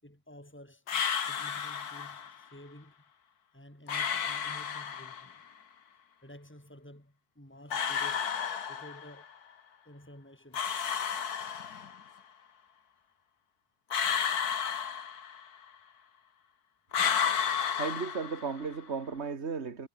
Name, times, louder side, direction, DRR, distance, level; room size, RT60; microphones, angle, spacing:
voice 1, 0.0-0.8 1.2-2.9 3.5-5.4 6.2-8.3 8.7-9.3 9.9-10.6, equal, 5° left, 5.5 m, -52 dB
sound 1, 0.9-2.4 3.9-5.4 7.7-9.2 10.5-12.1 13.9-15.6 16.9-18.8, left 7 dB, 75° left, 2.0 m, -32 dB
voice 2, 17.8-19.9, right 5 dB, 45° right, 2.1 m, -35 dB
omnidirectional pair, 1.7 m